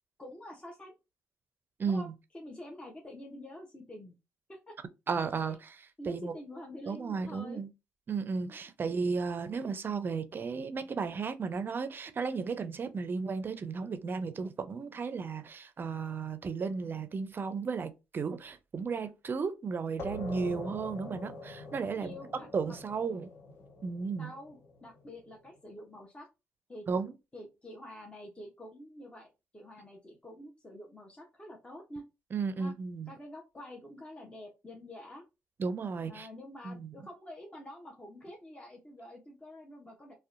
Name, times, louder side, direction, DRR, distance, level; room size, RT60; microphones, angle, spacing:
voice 1, 0.2-0.9 1.9-2.1 2.3-4.2 4.5-4.8 5.5-5.6 6.0-7.6 8.5-8.6 21.9-22.8 24.2-26.3 26.7-26.9 27.3-32.1 32.6-32.7 33.1-35.2 36.1-40.1, left 1 dB, 20° left, 0.7 m, -47 dB
voice 2, 1.8-2.1 5.1-6.3 6.9-7.7 8.1-22.2 22.5-23.3 23.8-24.3 26.9-27.1 32.3-33.1 35.6-36.3 36.6-36.9, right 5 dB, 40° right, 0.4 m, -34 dB
sound 1, 20.0-25.3, left 2 dB, 50° left, 1.0 m, -44 dB
2.6 x 2.1 x 2.4 m
supercardioid pair, 65°, 5 cm